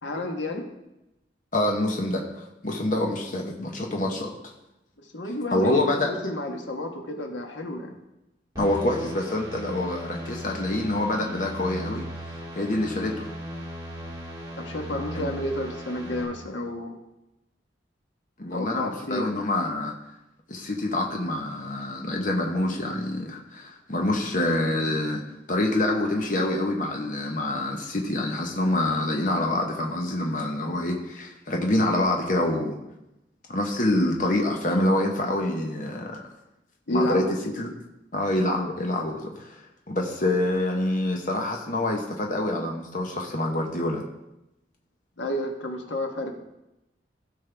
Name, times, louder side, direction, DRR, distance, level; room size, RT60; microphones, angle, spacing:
voice 1, 0.0-0.7 5.1-7.9 14.6-17.0 18.5-19.3 36.9-37.3 45.2-46.3, left 1 dB, 85° left, 3 dB, 1.3 m, -30 dB
voice 2, 1.5-4.3 5.5-6.1 8.6-12.0 12.6-13.3 15.1-15.3 18.4-19.9 20.5-25.2 25.5-32.8 33.5-36.2 36.9-37.2 37.6-37.7 38.1-44.0, left 1 dB, 45° left, 1 dB, 1.1 m, -26 dB
sound 1, 8.6-16.2, equal, 20° right, 2.6 m, -37 dB
16.0 x 5.5 x 3.4 m, 0.93 s
head